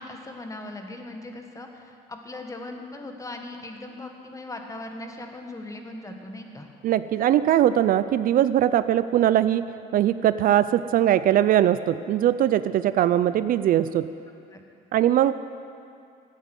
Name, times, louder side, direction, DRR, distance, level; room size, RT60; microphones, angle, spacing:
voice 1, 0.0-6.7 14.5-14.6, left 2 dB, 20° left, 4 dB, 1.6 m, -39 dB
voice 2, 6.8-9.6 9.9-14.1 14.9-15.3, right 11 dB, 55° right, 13 dB, 0.4 m, -21 dB
13.0 x 9.0 x 8.0 m, 2.5 s
cardioid pair, 110°, 17 cm